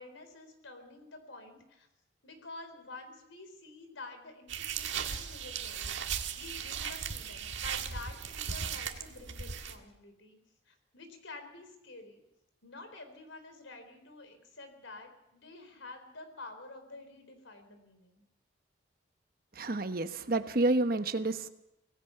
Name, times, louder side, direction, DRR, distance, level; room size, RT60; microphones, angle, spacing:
voice 1, 0.0-1.9 2.2-10.4 10.7-12.2 12.6-18.2, left 2 dB, 85° left, 7 dB, 4.0 m, -49 dB
sound 1, 4.5-9.8, right 7 dB, 75° right, 1.7 m, -37 dB
voice 2, 19.5-21.5, right 2 dB, 50° right, 9 dB, 1.1 m, -29 dB
24.5 x 18.0 x 5.8 m, 0.87 s
head